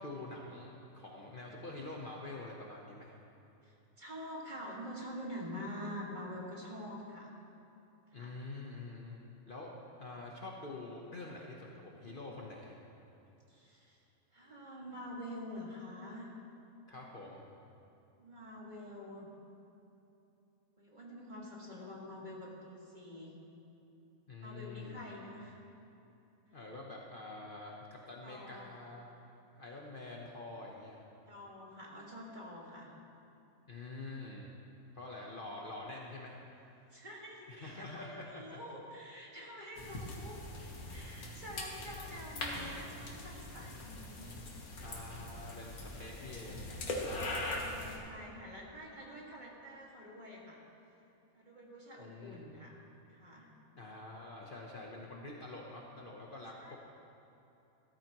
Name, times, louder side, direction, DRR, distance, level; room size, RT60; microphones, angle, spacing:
voice 1, 0.0-3.1 8.1-9.2 9.5-9.7 10.0-12.8 16.9-17.4 24.3-25.0 26.5-29.1 29.6-31.1 33.7-34.5 34.9-36.4 37.5-38.6 44.8-46.7 52.0-52.5 53.7-56.8, left 2 dB, 40° left, -2 dB, 1.0 m, -46 dB
voice 2, 3.6-7.3 8.1-8.3 13.5-14.0 14.3-16.3 18.2-19.3 20.8-23.3 24.4-25.6 28.2-28.7 31.3-32.9 36.9-40.4 40.9-44.3 45.9-50.6 51.3-52.7 53.1-53.5 56.6-56.8, equal, 35° right, -4 dB, 2.0 m, -47 dB
sound 1, 39.8-48.0, left 2 dB, 85° left, 1.8 m, -42 dB
14.5 x 13.5 x 3.0 m, 2.9 s
omnidirectional pair, 1.5 m